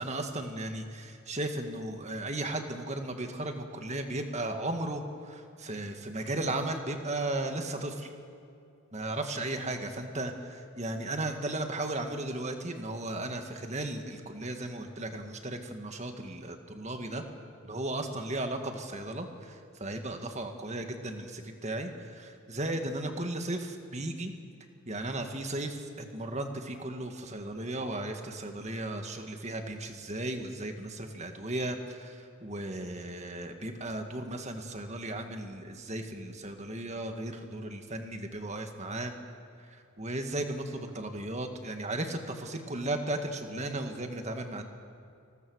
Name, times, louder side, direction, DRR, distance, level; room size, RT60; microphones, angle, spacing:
voice 1, 0.0-8.1 8.9-17.2 17.6-24.3 24.9-39.1 39.6-44.6, right 1 dB, 30° right, 5 dB, 1.9 m, -35 dB
29.0 x 20.5 x 6.4 m, 2.4 s
head